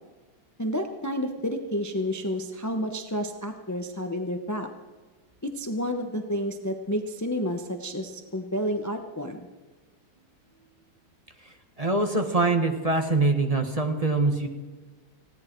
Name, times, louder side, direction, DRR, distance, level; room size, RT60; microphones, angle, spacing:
voice 1, 0.6-4.7 5.5-9.5, equal, 20° left, 5 dB, 0.5 m, -30 dB
voice 2, 11.8-14.5, right 3 dB, 20° right, 5 dB, 1.2 m, -23 dB
19.5 x 16.5 x 4.6 m, 1.3 s
omnidirectional pair, 2.2 m